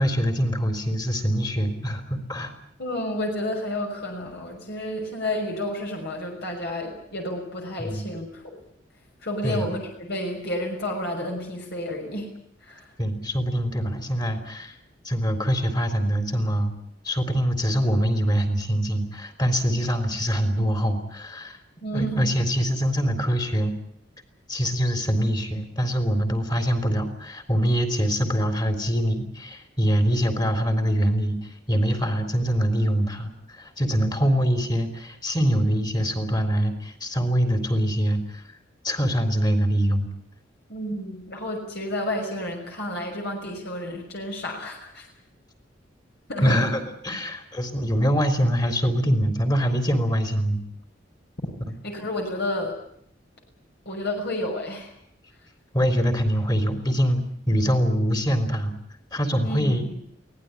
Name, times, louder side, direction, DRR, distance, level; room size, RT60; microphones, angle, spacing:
voice 1, 0.0-2.5 7.8-8.1 9.4-9.7 13.0-14.7 15.0-16.7 17.0-21.6 21.9-23.7 24.5-38.4 38.8-40.1 46.4-50.6 55.7-57.2 57.5-58.7 59.1-59.9, equal, 20° left, 9 dB, 3.7 m, -24 dB
voice 2, 2.8-8.6 9.2-12.3 12.7-12.8 21.8-22.3 40.7-45.1 46.3-46.6 51.8-52.7 53.9-54.9 59.4-59.8, left 1 dB, 60° left, 1 dB, 6.1 m, -30 dB
23.5 x 18.0 x 9.8 m, 0.70 s
head